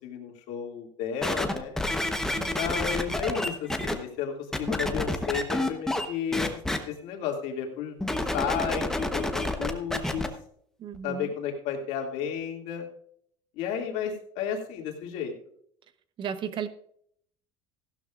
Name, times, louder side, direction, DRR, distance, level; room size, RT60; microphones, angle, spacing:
voice 1, 0.0-1.8 2.5-6.5 6.8-8.9 9.1-10.3 11.0-12.9 13.6-15.3, left 8 dB, 65° left, 2 dB, 2.4 m, -33 dB
sound 1, 1.2-3.9 4.5-6.1 6.3-6.8 8.0-10.3 10.9-11.0, left 1 dB, 5° left, 1.0 m, -28 dB
voice 2, 2.3-2.9 10.8-11.3 16.2-16.7, right 7 dB, 40° right, 12 dB, 0.9 m, -35 dB
15.0 x 12.0 x 2.5 m, 0.66 s
cardioid pair, 135°, 13 cm